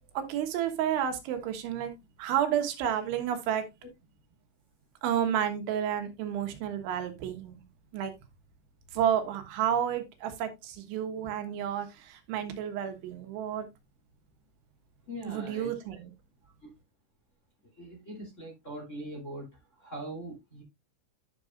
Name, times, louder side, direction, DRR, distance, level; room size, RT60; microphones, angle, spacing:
voice 1, 0.2-1.9 2.2-3.7 5.0-7.6 7.9-8.1 8.9-13.7 15.3-16.1, right 9 dB, 85° right, 3.7 m, -31 dB
voice 2, 15.0-15.7 16.4-16.7 17.8-20.6, right 1 dB, 20° left, 2.7 m, -42 dB
11.0 x 6.6 x 2.5 m
omnidirectional pair, 5.3 m